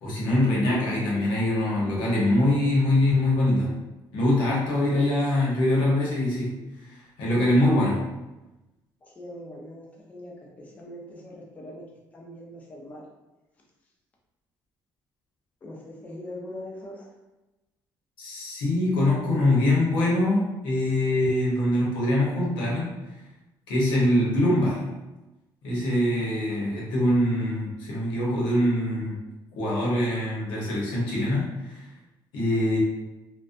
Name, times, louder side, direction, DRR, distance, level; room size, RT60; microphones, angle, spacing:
voice 1, 0.0-3.7 4.1-6.5 6.9-8.0 18.2-22.9 23.7-24.9 25.6-29.2 29.6-31.9 32.3-32.8, left 1 dB, 80° left, -4 dB, 0.8 m, -23 dB
voice 2, 9.0-11.8 12.1-13.1 15.6-17.1, left 1 dB, 20° left, -2 dB, 0.4 m, -41 dB
2.5 x 2.1 x 2.4 m, 1.0 s
cardioid pair, 170°, 8 cm